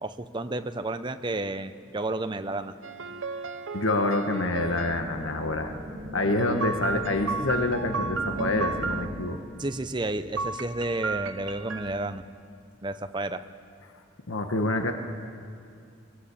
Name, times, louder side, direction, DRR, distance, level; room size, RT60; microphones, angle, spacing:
voice 1, 0.0-2.7 9.6-12.2 12.8-13.4, right 2 dB, 25° right, 9 dB, 0.7 m, -31 dB
sound 1, 2.8-5.0 6.4-9.0 10.4-11.9, right 4 dB, 75° right, 0.9 m, -33 dB
voice 2, 3.7-5.8 6.1-9.4 14.3-14.9, left 2 dB, 80° left, 5 dB, 1.4 m, -27 dB
sound 2, 4.4-9.5, left 1 dB, 50° right, 4.3 m, -38 dB
23.5 x 17.5 x 8.6 m, 2.4 s
head